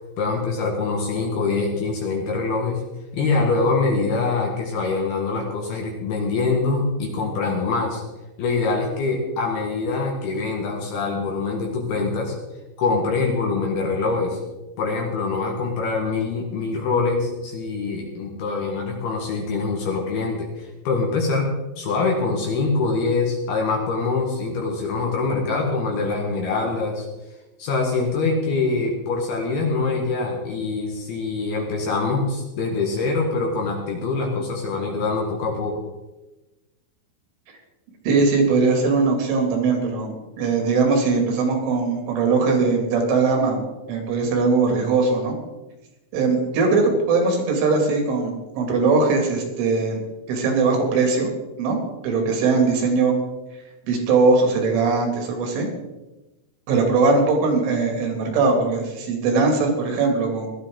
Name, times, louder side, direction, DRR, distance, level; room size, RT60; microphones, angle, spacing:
voice 1, 0.2-2.8 3.1-8.0 8.4-12.3 12.8-14.4 14.8-21.5 21.8-27.1 27.6-35.8, left 3 dB, 60° left, 0 dB, 3.1 m, -24 dB
voice 2, 38.0-43.6 43.9-45.3 46.1-50.0 50.3-51.3 51.6-51.8 52.0-53.2 53.9-55.7 56.7-60.5, right 4 dB, 70° right, 2 dB, 4.8 m, -20 dB
18.0 x 13.0 x 3.8 m, 1.1 s
omnidirectional pair, 5.9 m